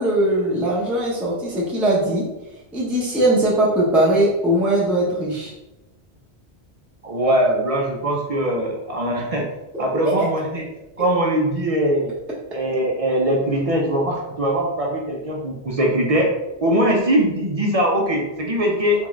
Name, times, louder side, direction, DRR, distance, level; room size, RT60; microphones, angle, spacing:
voice 1, 0.0-2.2 2.7-5.5 9.7-10.3, right 1 dB, ahead, -6 dB, 0.6 m, -20 dB
voice 2, 7.0-9.5 9.8-10.7 11.0-12.1 12.5-16.3 16.6-19.1, right 1 dB, 45° right, -1 dB, 0.5 m, -21 dB
3.6 x 2.4 x 3.1 m, 0.97 s
omnidirectional pair, 1.1 m